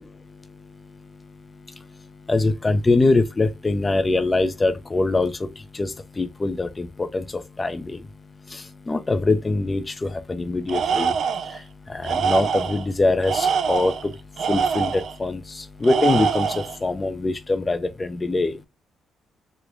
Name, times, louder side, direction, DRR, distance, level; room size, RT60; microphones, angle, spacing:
voice 1, 2.3-5.3 5.8-5.9 6.2-7.2 7.6-8.0 8.9-11.1 11.9-13.9 14.5-15.4 15.8-16.5 16.8-18.5, left 2 dB, 25° left, 0.5 m, -22 dB
Tools, 10.7-11.6 12.0-12.9 13.2-15.2 15.8-16.8, right 6 dB, 60° right, 0.3 m, -24 dB
3.1 x 2.1 x 3.7 m
cardioid pair, 90°, 0 cm